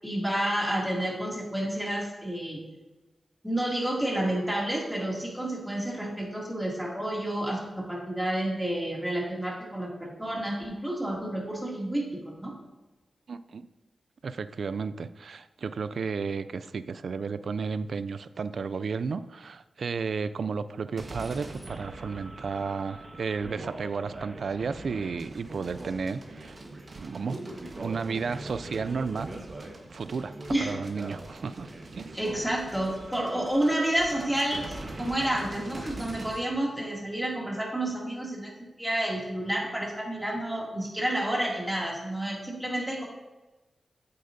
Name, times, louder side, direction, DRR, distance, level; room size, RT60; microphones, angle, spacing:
voice 1, 0.0-2.6 3.4-12.5 30.5-30.8 32.1-38.5 38.8-43.0, right 1 dB, 5° right, -3 dB, 2.5 m, -30 dB
voice 2, 13.3-13.7 14.2-26.6 26.9-27.4 27.8-29.3 29.9-32.2, right 5 dB, 75° right, 14 dB, 0.3 m, -33 dB
sound 1, 21.0-36.4, right 2 dB, 45° right, 1.3 m, -42 dB
8.6 x 7.7 x 2.7 m, 1.1 s
cardioid pair, 60°, 0 cm